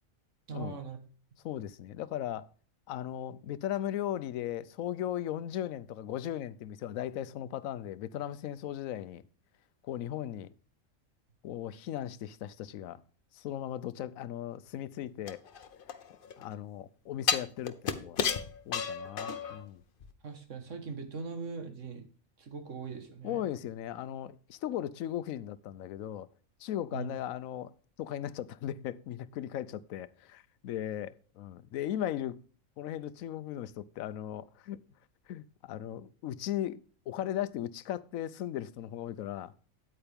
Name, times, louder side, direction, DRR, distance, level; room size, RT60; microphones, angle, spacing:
voice 1, 0.5-1.0 20.2-22.0 22.4-23.4 26.9-27.1, right 5 dB, 65° right, 1.7 m, -40 dB
voice 2, 1.4-2.5 2.9-9.2 9.9-10.5 11.4-13.0 13.3-15.4 16.4-18.2 18.7-19.8 23.2-26.3 26.6-27.7 28.0-32.4 32.8-34.8 35.3-36.8 37.1-39.5, left 11 dB, 80° left, 1.0 m, -37 dB
sound 1, 15.3-16.4 17.3-19.6 20.0-20.1, left 7 dB, 50° left, 0.8 m, -32 dB
8.8 x 8.8 x 3.5 m
omnidirectional pair, 1.4 m